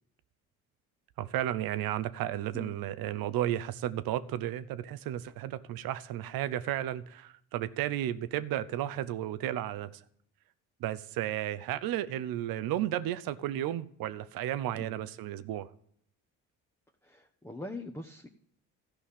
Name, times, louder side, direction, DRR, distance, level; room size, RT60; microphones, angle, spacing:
voice 1, 1.2-10.0 10.8-15.7, right 12 dB, 80° right, 0.8 m, -33 dB
voice 2, 17.0-18.3, left 2 dB, 5° left, 1.2 m, -43 dB
13.0 x 5.6 x 8.4 m
supercardioid pair, 65°, 35 cm